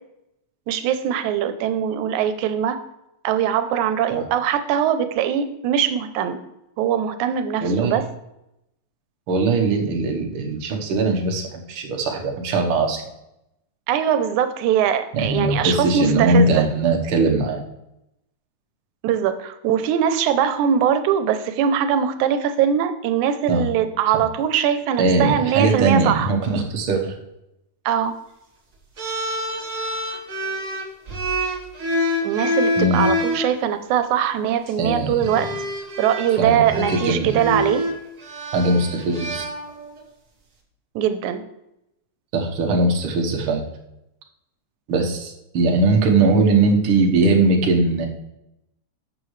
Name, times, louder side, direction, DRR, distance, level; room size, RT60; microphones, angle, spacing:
voice 1, 0.7-2.8 3.2-6.4 6.8-8.0 13.9-16.7 19.0-26.3 27.9-28.1 32.2-35.5 36.0-37.8 41.0-41.4, right 9 dB, 90° right, 10 dB, 2.1 m, -21 dB
voice 2, 7.6-8.0 9.3-13.0 15.1-17.6 23.5-23.6 25.0-27.1 32.8-33.0 34.8-35.3 36.4-37.6 38.5-39.5 42.3-43.6 44.9-48.1, right 3 dB, 55° right, 1 dB, 1.7 m, -20 dB
sound 1, 29.0-33.5 34.5-34.7 35.2-40.0, equal, 40° right, 1.1 m, -26 dB
12.0 x 7.4 x 3.2 m, 0.87 s
omnidirectional pair, 3.3 m